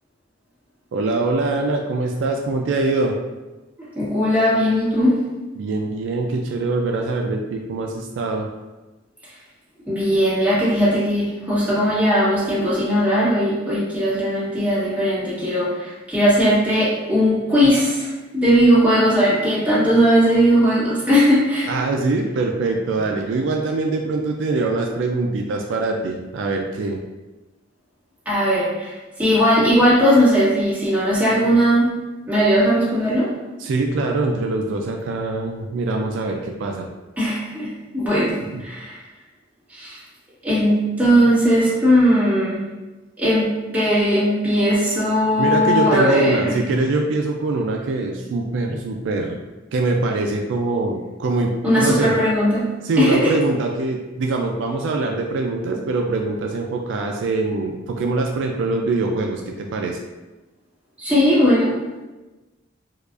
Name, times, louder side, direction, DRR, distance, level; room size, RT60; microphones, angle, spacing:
voice 1, 0.9-3.1 5.6-8.5 21.7-27.0 33.6-36.9 38.5-38.6 45.4-49.4 49.7-52.1 52.8-60.0, right 3 dB, 65° right, 2 dB, 0.3 m, -23 dB
voice 2, 3.9-5.2 9.9-21.7 28.2-31.9 32.3-33.3 37.2-39.0 39.7-40.0 40.4-42.6 43.2-46.6 51.6-52.6 53.0-53.3 61.0-61.7, equal, 10° right, -11 dB, 1.5 m, -18 dB
4.6 x 2.4 x 2.4 m, 1.1 s
head